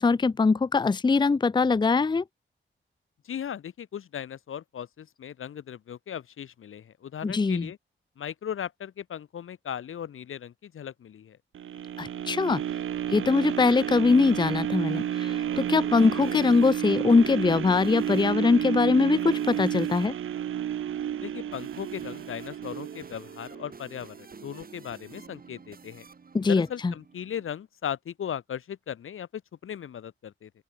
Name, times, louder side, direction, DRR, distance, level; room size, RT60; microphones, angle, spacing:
voice 1, 0.0-2.2 7.2-7.7 12.0-12.6 13.1-20.1 26.3-26.9, left 4 dB, 20° left, 0.5 m, -22 dB
voice 2, 3.2-7.8 8.2-11.4 21.2-26.1 26.5-30.5, left 9 dB, 80° left, 0.9 m, -37 dB
sound 1, 11.5-23.6 24.1-24.2, right 10 dB, 75° right, 0.5 m, -31 dB
sound 2, 15.2-27.5, right 5 dB, 45° right, 2.5 m, -48 dB
open air
wide cardioid pair, 120°, 21 cm